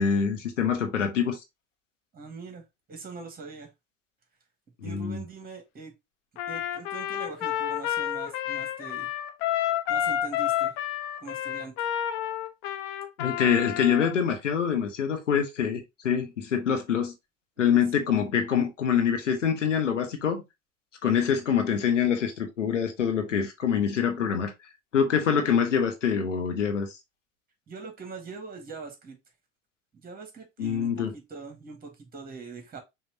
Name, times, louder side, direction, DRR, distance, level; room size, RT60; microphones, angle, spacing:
voice 1, 0.0-1.4 4.8-5.2 13.2-17.1 17.6-20.4 21.0-24.5 24.9-26.9 30.6-31.1, left 7 dB, 80° left, 1.2 m, -25 dB
voice 2, 2.1-3.7 4.8-5.9 6.5-9.1 9.9-10.8 11.2-11.9 17.6-17.8 27.7-29.2 29.9-32.8, right 4 dB, 25° right, 2.0 m, -42 dB
Trumpet, 6.4-14.1, left 11 dB, 50° left, 0.9 m, -30 dB
5.6 x 2.9 x 2.9 m
figure-of-eight pair, 75°, 36 cm